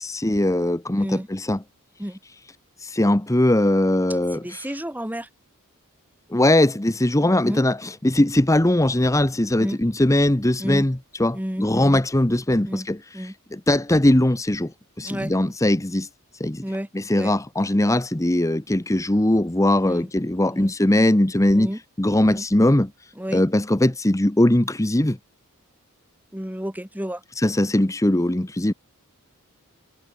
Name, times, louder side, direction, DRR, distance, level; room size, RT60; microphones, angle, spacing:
voice 1, 0.0-1.6 2.8-4.7 6.3-14.7 15.0-16.1 16.3-16.6 16.9-21.7 22.0-25.2 27.4-28.7, left 1 dB, 15° left, 0.9 m, -20 dB
voice 2, 4.3-5.3 7.4-7.6 9.6-9.8 10.6-10.8 11.3-12.0 12.7-12.9 13.1-13.3 15.0-15.3 16.6-16.9 17.1-17.3 19.8-20.1 20.5-20.7 21.5-21.8 22.2-22.4 23.2-23.4 26.3-27.2, equal, 5° right, 2.1 m, -31 dB
head